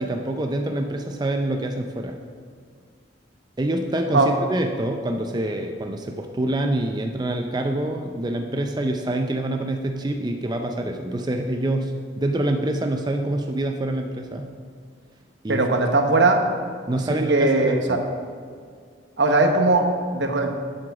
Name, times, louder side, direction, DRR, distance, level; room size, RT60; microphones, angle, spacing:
voice 1, 0.0-2.2 3.6-14.5 15.4-15.6 16.9-18.0, right 1 dB, 20° right, 4 dB, 0.5 m, -26 dB
voice 2, 15.5-16.4 17.1-18.0 19.2-20.5, right 2 dB, 70° right, 4 dB, 1.0 m, -19 dB
7.8 x 7.8 x 5.8 m, 2.1 s
head